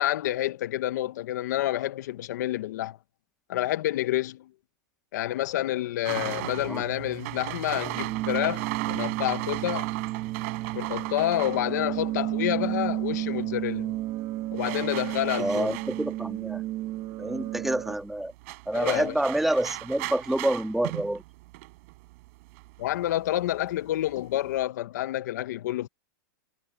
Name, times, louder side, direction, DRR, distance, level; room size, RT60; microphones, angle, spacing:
voice 1, 0.0-3.0 3.5-4.5 5.1-9.9 10.7-13.9 14.5-15.8 18.7-19.1 22.8-25.9, left 14 dB, 65° left, 1.0 m, -28 dB
sound 1, 6.0-12.8 13.0-24.6, right 24 dB, 45° right, 4.9 m, -37 dB
voice 2, 6.2-6.8 15.4-16.6 17.2-18.3 18.7-21.2, right 1 dB, ahead, 1.8 m, -28 dB
sound 2, 7.9-17.9, right 16 dB, 30° right, 1.1 m, -32 dB
supercardioid pair, 160°, 10 cm